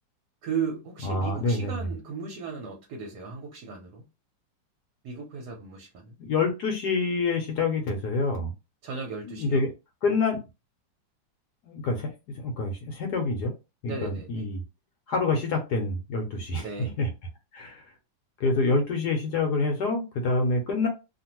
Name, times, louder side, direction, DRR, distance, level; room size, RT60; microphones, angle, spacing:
voice 1, 0.4-4.0 5.0-6.2 8.8-9.6 13.9-14.5 16.5-17.0, right 5 dB, 65° right, 1.1 m, -36 dB
voice 2, 1.0-1.9 6.2-8.5 9.3-9.7 10.0-10.4 11.6-13.5 13.8-14.6 15.1-16.7 17.0-17.1 17.5-17.8 18.4-20.9, left 3 dB, 70° left, 1.1 m, -27 dB
2.8 x 2.5 x 2.9 m
omnidirectional pair, 2.1 m